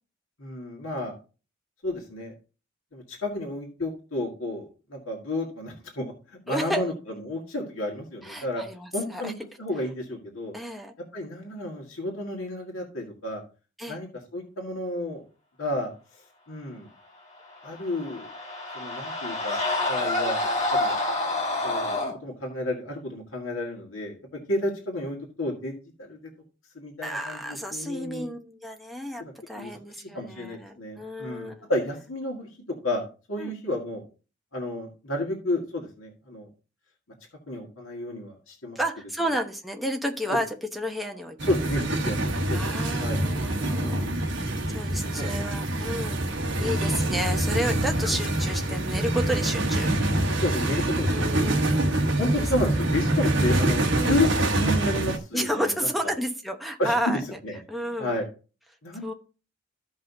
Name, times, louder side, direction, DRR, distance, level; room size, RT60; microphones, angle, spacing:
voice 1, 0.4-1.1 1.8-2.3 2.9-8.6 8.9-9.3 9.6-10.5 11.1-13.4 13.9-15.2 15.6-16.9 17.6-18.3 18.7-19.6 19.9-20.4 20.7-20.9 21.6-24.2 24.5-26.2 26.7-28.3 29.2-32.5 32.8-34.0 34.5-36.5 37.5-38.8 39.2-39.3 40.3-40.4 41.4-43.2 43.8-44.3 45.0-45.5 46.0-46.2 46.5-47.0 50.4-51.8 52.2-55.9 56.8-57.6 58.0-58.3 58.8-59.1, left 1 dB, 90° left, 0 dB, 1.8 m, -31 dB
voice 2, 6.5-6.8 8.2-9.3 10.5-10.9 13.8-14.0 27.0-31.7 33.4-33.5 38.7-41.4 42.5-46.2 46.6-50.2 51.1-52.4 54.0-54.1 55.3-57.2 57.7-58.2 59.0-59.1, equal, ahead, 2 dB, 1.0 m, -31 dB
sound 1, 17.7-22.1, left 2 dB, 35° left, 3.1 m, -28 dB
sound 2, 41.4-55.2, right 1 dB, 60° right, 1.2 m, -25 dB
14.5 x 5.5 x 2.7 m, 0.35 s
head